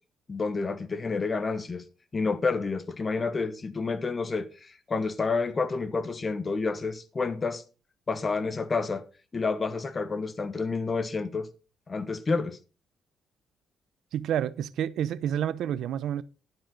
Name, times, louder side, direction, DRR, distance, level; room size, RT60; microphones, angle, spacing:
voice 1, 0.3-1.8 2.1-7.6 8.1-9.0 9.3-11.5 11.9-12.6, left 4 dB, 35° left, 1.2 m, -29 dB
voice 2, 14.1-16.2, right 10 dB, 80° right, 0.6 m, -29 dB
11.5 x 8.8 x 4.0 m
cardioid pair, 90°, 0 cm